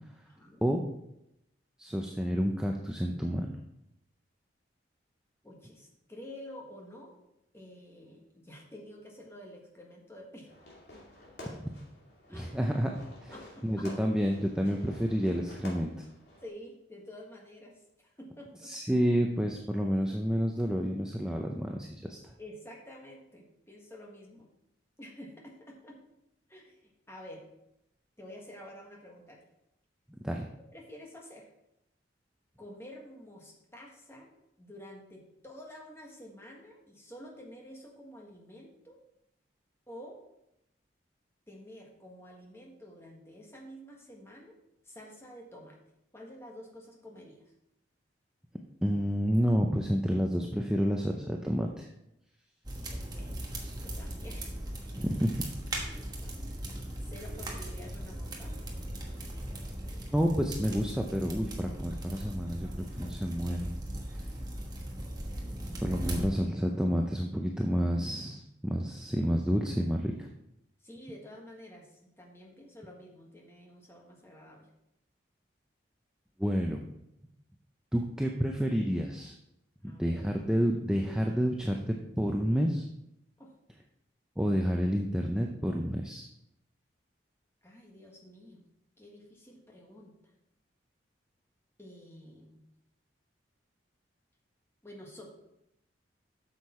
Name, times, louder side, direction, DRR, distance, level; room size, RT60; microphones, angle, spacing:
voice 1, 0.2-0.7 5.4-7.2 7.5-10.6 11.4-11.5 12.3-12.5 13.3-13.9 16.4-18.7 22.4-24.5 25.0-26.0 26.5-27.4 28.2-29.4 30.7-31.5 32.6-34.3 34.6-39.0 39.9-40.2 41.5-44.6 44.8-45.8 46.1-47.5 52.9-54.6 54.9-55.0 55.8-56.4 57.0-58.6 70.8-74.7 79.8-80.2 83.4-83.5 87.6-88.6 89.0-90.2 91.8-92.6 94.8-95.3, equal, 15° left, -1 dB, 1.4 m, -49 dB
voice 2, 1.8-3.5 12.3-13.0 13.2-13.3 13.6-15.9 18.6-22.3 30.2-30.4 48.8-51.9 54.9-55.4 60.1-63.7 65.7-70.3 76.4-76.8 77.9-79.3 79.8-82.9 84.4-86.2, equal, 5° right, 1 dB, 0.5 m, -29 dB
Fireworks, 10.5-16.5, left 1 dB, 60° left, 2.5 m, -50 dB
sound 1, 52.6-66.2, right 1 dB, 20° right, 1.2 m, -39 dB
8.2 x 6.5 x 4.3 m, 0.83 s
head